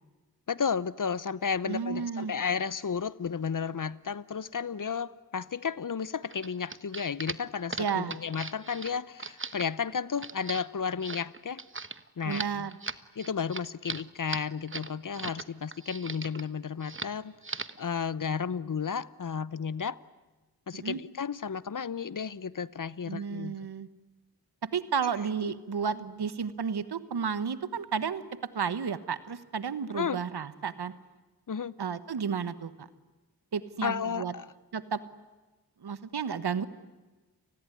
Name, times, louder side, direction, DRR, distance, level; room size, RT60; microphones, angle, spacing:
voice 1, 0.5-11.6 12.2-12.7 13.2-17.3 17.8-20.0 20.7-23.6 25.4-25.5 29.9-30.2 31.5-31.7 33.8-34.5, left 6 dB, 55° left, 19 dB, 0.9 m, -33 dB
voice 2, 1.6-2.3 7.8-8.2 12.2-12.8 20.7-21.0 23.1-23.9 24.7-28.2 28.5-30.9 31.8-32.9 33.5-34.3 34.7-35.0 35.8-36.7, right 6 dB, 85° right, 14 dB, 1.3 m, -32 dB
sound 1, 6.3-15.4 15.7-16.5 16.8-17.2 17.4-17.8, right 3 dB, 30° right, 1.2 m, -39 dB
30.0 x 20.0 x 9.9 m, 1.2 s
cardioid pair, 40°, 38 cm